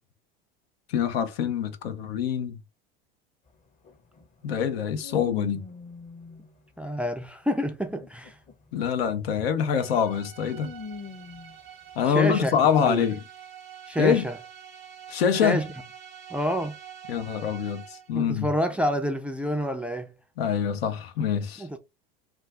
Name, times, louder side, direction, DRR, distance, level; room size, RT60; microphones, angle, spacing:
voice 1, 0.9-2.6 4.4-5.6 8.7-10.7 12.0-13.2 14.0-14.3 15.1-15.6 17.1-18.5 20.4-21.8, left 8 dB, 80° left, 0.6 m, -25 dB
sound 1, 3.5-3.6 3.8-7.1 7.6-11.7, left 4 dB, 25° left, 0.7 m, -44 dB
voice 2, 6.8-8.4 12.1-13.1 13.9-14.4 15.4-15.7 16.3-16.8 18.1-20.1 21.6-21.8, equal, 5° right, 0.3 m, -28 dB
sound 2, 9.8-18.2, right 9 dB, 80° right, 0.8 m, -46 dB
2.4 x 2.3 x 3.3 m
hypercardioid pair, 95°, 30 cm